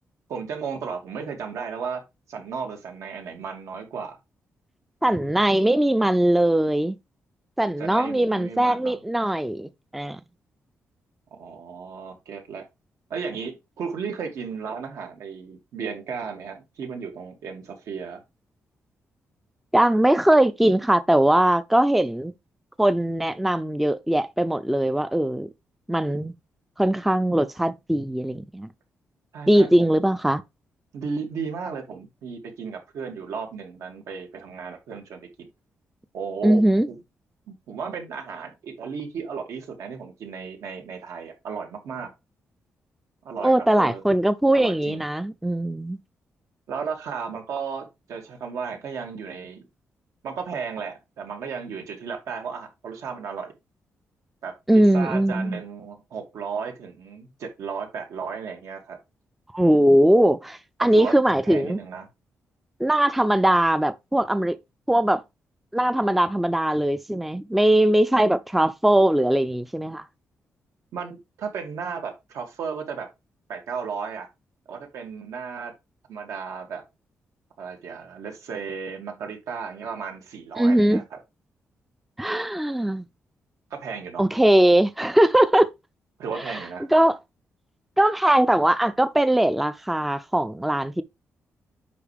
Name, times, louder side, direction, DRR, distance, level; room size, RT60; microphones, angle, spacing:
voice 1, 0.3-2.0 2.3-4.2 7.8-9.0 11.4-12.6 13.1-18.2 29.3-30.0 30.9-35.5 36.1-37.0 37.5-42.1 43.2-44.0 44.5-45.0 46.7-49.7 50.2-53.5 54.4-54.5 54.9-59.0 60.9-61.1 61.5-62.1 70.9-73.1 73.5-74.3 74.7-75.7 76.1-76.8 77.6-81.2 83.7-84.2 86.2-86.8, right 6 dB, 85° right, 2.4 m, -34 dB
voice 2, 5.0-7.0 7.6-10.2 19.7-22.3 22.8-25.5 25.9-26.3 26.8-28.7 29.5-30.4 36.4-36.9 43.4-46.0 54.7-55.6 59.5-61.8 62.8-64.6 64.9-65.2 65.7-70.0 80.6-81.0 82.2-83.1 84.2-85.7 86.5-86.6 86.9-87.2 88.0-91.0, right 1 dB, 5° right, 0.3 m, -20 dB
8.5 x 5.2 x 3.4 m
wide cardioid pair, 175°, 5 cm